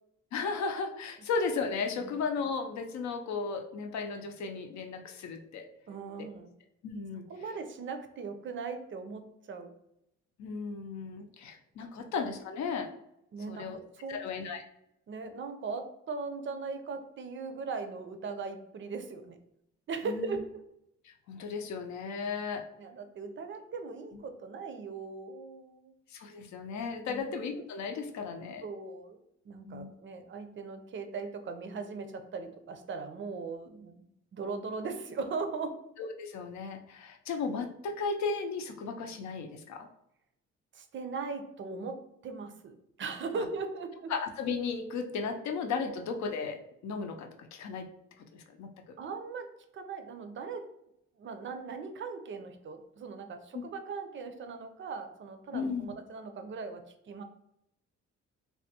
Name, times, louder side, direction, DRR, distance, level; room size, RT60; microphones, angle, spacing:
voice 1, 0.3-5.7 6.8-7.3 10.4-12.9 13.5-13.8 14.1-14.6 20.0-20.4 21.0-22.7 26.1-28.7 29.6-29.9 36.0-39.9 43.3-43.4 44.1-47.9 48.2-49.0 53.5-53.6 55.5-55.9, left 5 dB, 65° left, 5 dB, 0.6 m, -35 dB
voice 2, 5.9-6.5 7.3-9.7 12.0-12.1 13.3-14.2 15.1-19.4 19.9-20.4 22.3-22.4 22.8-25.9 27.1-27.3 28.6-29.2 29.4-34.1 34.3-35.8 40.7-44.1 49.0-49.5 49.7-50.7 51.2-57.2, right 4 dB, 40° right, 8 dB, 0.5 m, -39 dB
3.4 x 2.2 x 2.8 m, 0.80 s
cardioid pair, 90°, 30 cm